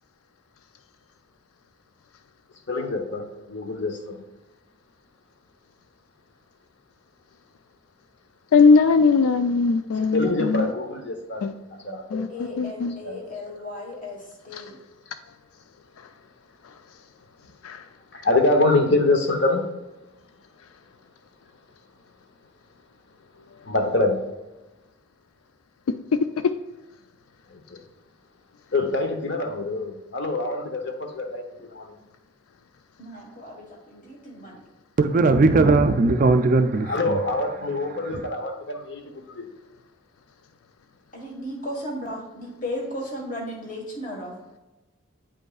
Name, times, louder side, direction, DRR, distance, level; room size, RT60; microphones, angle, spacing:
voice 1, 2.7-4.2 10.1-11.5 11.8-12.3 12.5-13.2 18.1-19.7 23.7-24.2 27.5-27.8 28.7-32.0 36.8-39.5, left 2 dB, 55° left, 0.8 m, -25 dB
voice 2, 8.5-10.7 11.4-11.5 12.1-12.9 14.5-14.7 17.6-17.8, left 4 dB, 80° left, 0.4 m, -20 dB
voice 3, 12.3-14.2 14.4-14.7 33.0-34.6 41.1-44.4, left 1 dB, 40° left, 1.5 m, -35 dB
voice 4, 35.0-37.2, right 3 dB, 40° right, 0.3 m, -18 dB
8.7 x 5.3 x 2.4 m
head